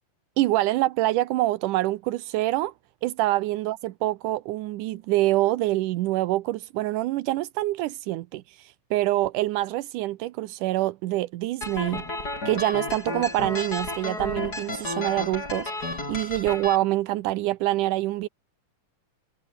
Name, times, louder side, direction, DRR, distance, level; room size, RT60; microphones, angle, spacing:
voice 1, 0.4-2.7 3.0-12.1 12.5-18.3, right 17 dB, 85° right, 2.3 m, -26 dB
sound 1, 11.6-16.8, left 2 dB, 30° left, 7.3 m, -32 dB
omnidirectional pair, 3.6 m